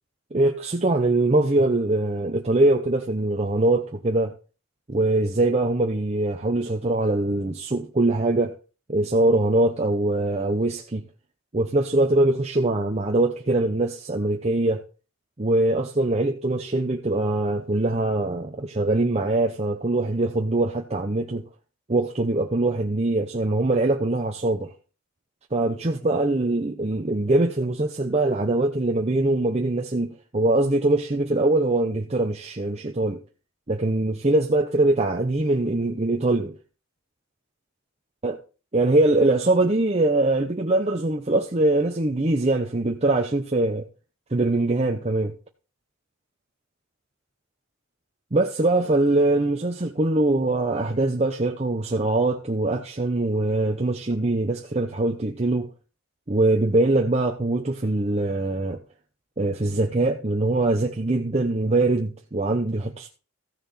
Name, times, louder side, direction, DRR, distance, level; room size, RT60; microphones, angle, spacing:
voice 1, 0.3-4.3 4.9-8.6 8.9-11.0 11.5-14.8 15.4-21.4 21.9-24.7 25.5-33.2 33.7-36.5 38.2-38.4 38.7-43.9 44.3-45.3 48.3-55.7 56.3-58.8 59.4-63.1, right 2 dB, 30° right, 0.8 m, -22 dB
14.5 x 6.6 x 4.2 m
head